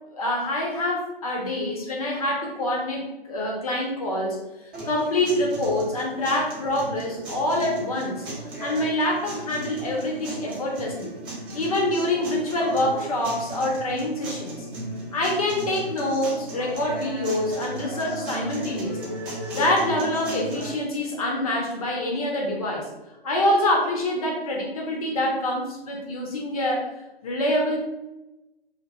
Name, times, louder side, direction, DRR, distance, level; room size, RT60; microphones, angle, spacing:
voice 1, 0.1-4.4 4.8-8.3 8.6-11.1 11.5-14.6 15.1-19.1 19.5-22.9 23.2-26.9 27.2-27.8, left 1 dB, 35° left, -1 dB, 0.6 m, -26 dB
sound 1, 4.7-20.7, right 1 dB, 20° right, 0.7 m, -35 dB
2.7 x 2.1 x 2.9 m, 1.0 s
figure-of-eight pair, 125°, 31 cm